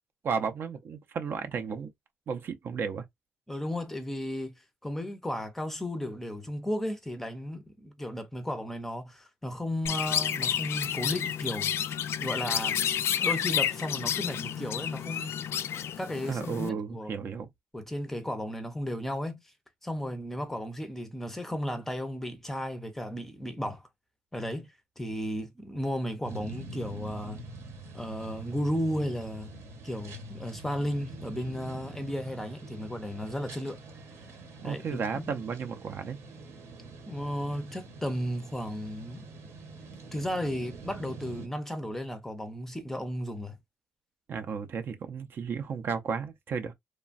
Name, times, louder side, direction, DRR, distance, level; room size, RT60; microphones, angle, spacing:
voice 1, 0.2-1.9 2.3-3.0 16.3-17.5 34.6-36.2 44.3-46.7, right 6 dB, 50° right, 0.5 m, -33 dB
voice 2, 3.5-11.7 12.2-12.8 13.2-15.5 15.8-17.2 17.7-19.4 19.8-23.9 24.3-27.4 27.9-29.5 29.8-33.8 34.6-35.4 37.1-39.3 40.1-43.6, equal, 5° left, 0.5 m, -34 dB
Chirp tweet, 9.9-16.7, left 9 dB, 60° left, 0.3 m, -30 dB
sound 1, 26.2-41.5, right 3 dB, 70° right, 0.9 m, -45 dB
3.1 x 2.2 x 2.4 m
cardioid pair, 140°, 5 cm